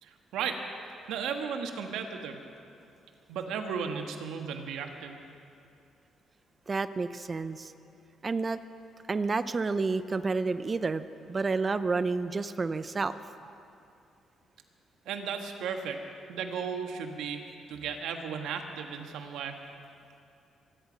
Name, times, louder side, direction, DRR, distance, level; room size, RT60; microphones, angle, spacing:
voice 1, 0.0-0.6 1.1-2.4 3.3-5.2 15.0-16.0 16.3-19.6, right 6 dB, 85° right, 4 dB, 1.4 m, -35 dB
voice 2, 6.7-7.7 8.2-8.6 9.1-13.2 13.4-13.6, right 4 dB, 30° right, 13 dB, 0.5 m, -30 dB
25.0 x 10.5 x 5.2 m, 2.6 s
cardioid pair, 90°, 0 cm